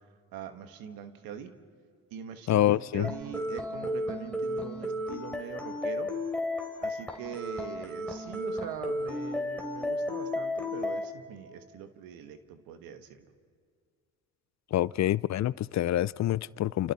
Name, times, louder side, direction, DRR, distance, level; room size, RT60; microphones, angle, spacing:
voice 1, 0.3-1.5 2.1-6.1 6.8-13.2, right 8 dB, 90° right, 1.5 m, -42 dB
voice 2, 2.5-3.1 14.7-16.9, left 13 dB, 55° left, 0.5 m, -26 dB
sound 1, 3.0-11.0, left 1 dB, 5° left, 3.5 m, -33 dB
29.0 x 29.0 x 4.2 m
supercardioid pair, 60°, 34 cm